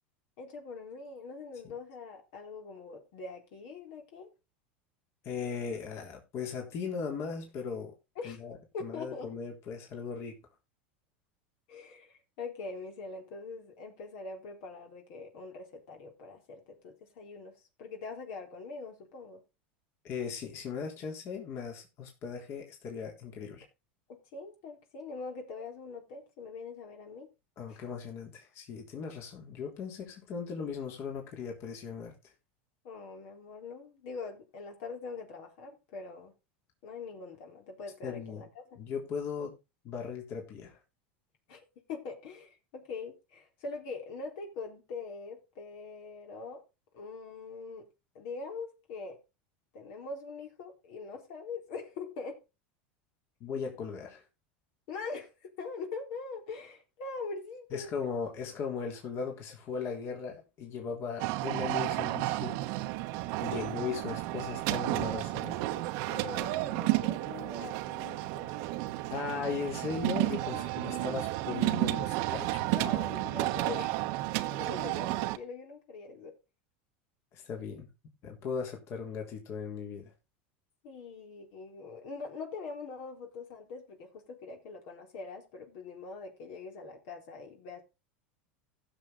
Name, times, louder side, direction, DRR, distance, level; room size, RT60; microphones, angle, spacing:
voice 1, 0.4-4.3 8.2-8.5 8.7-9.3 11.7-19.4 24.1-27.3 27.7-27.8 32.8-36.3 36.8-38.8 41.5-46.6 46.9-47.9 48.1-49.2 49.7-52.4 54.9-57.9 63.5-63.7 66.1-68.8 70.5-71.1 72.7-74.0 74.4-76.4 80.8-87.8, left 4 dB, 65° left, 3.9 m, -43 dB
voice 2, 5.2-7.9 8.2-10.4 20.0-23.7 27.6-32.3 38.0-38.4 38.8-39.5 39.8-40.8 53.4-54.2 57.7-62.6 63.4-65.6 69.1-72.8 77.3-77.9 78.2-80.1, left 6 dB, 50° left, 3.5 m, -38 dB
sound 1, 61.2-75.4, right 18 dB, 60° right, 1.0 m, -32 dB
15.5 x 6.8 x 3.9 m
hypercardioid pair, 100°, 6 cm